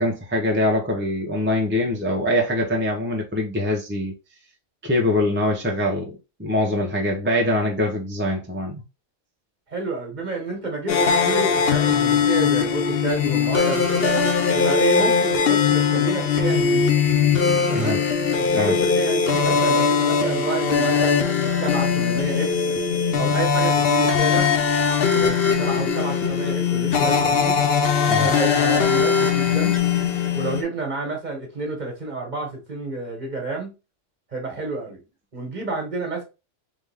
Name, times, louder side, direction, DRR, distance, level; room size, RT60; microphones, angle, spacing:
voice 1, 0.0-4.1 4.8-8.8 17.7-18.0 18.5-18.8 28.1-28.3, left 1 dB, 10° right, 0.7 m, -23 dB
voice 2, 9.7-14.2 14.5-16.9 17.7-18.0 18.4-21.3 21.6-22.6 23.2-24.5 25.1-27.6 28.1-29.8 30.3-33.7 34.3-35.0 35.3-36.2, right 3 dB, 35° right, 1.5 m, -29 dB
sound 1, 10.9-30.6, left 6 dB, 55° left, 0.9 m, -20 dB
3.6 x 3.5 x 3.5 m
omnidirectional pair, 1.3 m